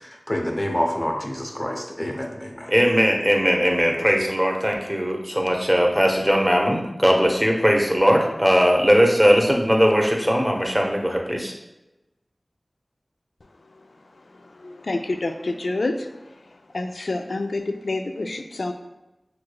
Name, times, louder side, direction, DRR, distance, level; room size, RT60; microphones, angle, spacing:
voice 1, 0.0-2.7, left 1 dB, 30° left, 0.6 m, -27 dB
voice 2, 2.7-11.5, equal, 5° right, 0.9 m, -19 dB
voice 3, 14.5-16.1 16.7-18.7, left 2 dB, 85° left, 0.4 m, -27 dB
5.7 x 3.2 x 2.2 m
wide cardioid pair, 40°, 0 cm